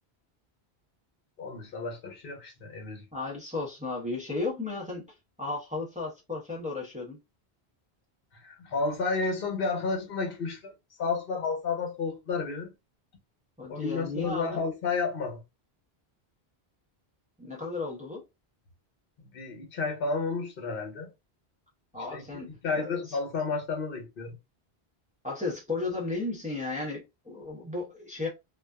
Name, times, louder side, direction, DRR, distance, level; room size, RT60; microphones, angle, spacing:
voice 1, 1.4-3.0 8.4-10.7 11.0-12.7 13.7-15.4 19.3-21.1 22.1-24.4, left 4 dB, 65° left, 1.0 m, -31 dB
voice 2, 3.1-5.0 5.4-7.2 13.6-14.6 17.4-18.2 21.9-22.5 22.8-23.0 25.2-28.3, left 3 dB, 10° right, 0.7 m, -34 dB
2.5 x 2.3 x 2.2 m
omnidirectional pair, 1.0 m